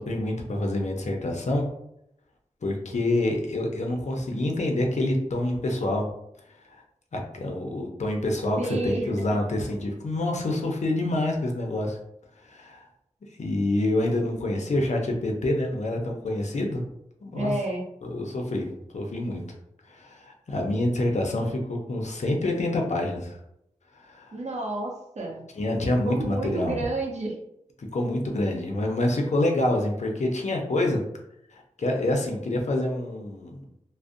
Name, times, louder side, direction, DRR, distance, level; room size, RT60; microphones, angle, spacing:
voice 1, 0.0-1.7 2.6-6.0 6.7-6.8 7.1-12.0 12.4-12.9 13.4-16.8 17.2-17.5 18.0-18.7 18.9-19.4 19.9-23.4 23.9-24.3 25.6-26.8 27.8-31.0 31.5-33.6, left 1 dB, 65° left, 1 dB, 0.5 m, -27 dB
voice 2, 8.6-9.3 17.3-17.8 24.3-25.4 26.0-27.4, right 2 dB, 65° right, -1 dB, 0.6 m, -30 dB
2.5 x 2.1 x 2.4 m, 0.79 s
wide cardioid pair, 55°, 13 cm